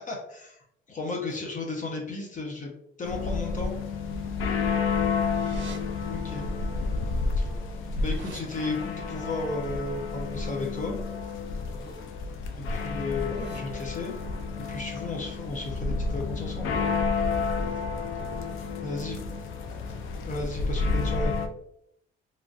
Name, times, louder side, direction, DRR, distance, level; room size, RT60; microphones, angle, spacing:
voice 1, 0.1-0.6 0.9-2.7 3.0-3.7 6.1-6.5 7.4-7.5 8.0-11.0 12.7-14.1 14.6-16.7 18.8-19.2 20.2-21.3, left 3 dB, 40° left, 0 dB, 0.6 m, -34 dB
sound 1, 3.0-21.5, left 4 dB, 85° left, 0.5 m, -30 dB
sound 2, 5.3-5.8 7.0-7.1 7.4-8.4 11.6-11.9 12.3-12.6 13.1-13.6, right 5 dB, 70° right, 0.5 m, -46 dB
voice 2, 7.4-7.7 11.6-12.0 17.4-19.1 19.6-20.0, left 1 dB, 5° right, -2 dB, 0.9 m, -50 dB
3.0 x 2.6 x 2.4 m, 0.75 s
cardioid pair, 90°, 20 cm